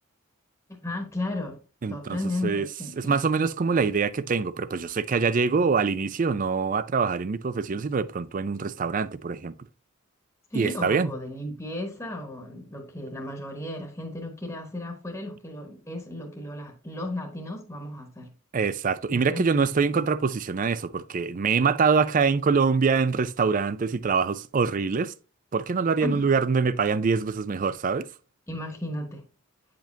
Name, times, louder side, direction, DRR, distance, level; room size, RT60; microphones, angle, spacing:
voice 1, 0.7-1.6 1.9-3.2 10.5-18.3 19.1-19.4 26.0-26.3 28.5-29.2, left 1 dB, 10° left, 1.1 m, -34 dB
voice 2, 1.8-2.7 3.0-9.5 10.5-11.1 18.5-25.1 25.5-28.1, right 5 dB, 40° right, 0.4 m, -24 dB
8.9 x 5.1 x 2.7 m
head